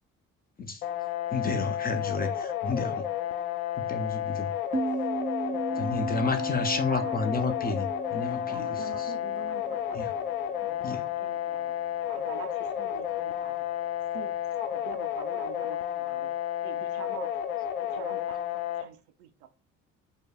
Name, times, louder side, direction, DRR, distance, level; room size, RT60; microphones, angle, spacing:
sound 1, 0.8-18.8, left 11 dB, 80° left, 0.6 m, -32 dB
voice 1, 1.3-3.1 3.8-4.6 5.8-9.1 9.9-10.1 10.8-11.0 14.6-14.7, left 3 dB, 20° left, 0.6 m, -31 dB
voice 2, 4.3-5.0 5.5-7.1 8.4-10.0 10.6-11.8 12.1-13.6 14.1-14.4 14.7-16.3 16.6-17.3 17.8-19.5, right 9 dB, 60° right, 0.7 m, -46 dB
sound 2, 4.7-10.1, right 4 dB, 20° right, 0.6 m, -36 dB
4.8 x 2.2 x 4.1 m
figure-of-eight pair, 45°, 42 cm